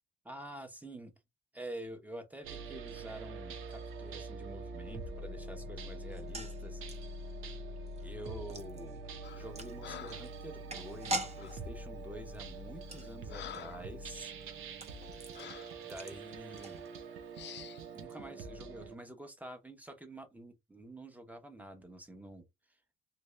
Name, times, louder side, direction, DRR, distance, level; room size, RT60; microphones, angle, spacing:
voice 1, 0.2-1.2 1.5-6.8 8.0-9.0 9.3-14.3 15.9-16.8 17.9-22.5, right 1 dB, 10° right, 1.0 m, -48 dB
sound 1, 2.4-19.0, right 2 dB, 85° right, 0.7 m, -45 dB
sound 2, 6.1-17.3 17.6-17.7 17.9-18.1, right 1 dB, 30° right, 1.1 m, -45 dB
Breathing, 9.2-9.5 9.8-10.3 11.4-11.6 12.3-12.5 12.9-13.9 14.4-14.6 15.3-15.8 16.5-16.7 17.3-17.8, left 10 dB, 60° left, 0.6 m, -48 dB
3.2 x 2.6 x 3.3 m
cardioid pair, 90°, 20 cm